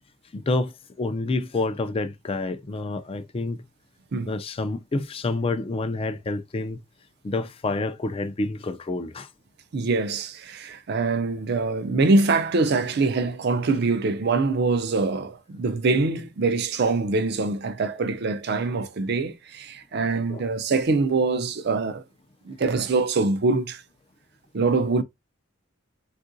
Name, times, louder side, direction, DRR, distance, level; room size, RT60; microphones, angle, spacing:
voice 1, 0.3-0.7 1.0-3.6 4.3-6.8 7.2-9.3 20.3-20.4, left 2 dB, 30° left, 0.4 m, -28 dB
voice 2, 9.7-22.0 22.5-23.8 24.5-25.0, right 3 dB, 55° right, 0.5 m, -24 dB
3.6 x 2.4 x 2.6 m
head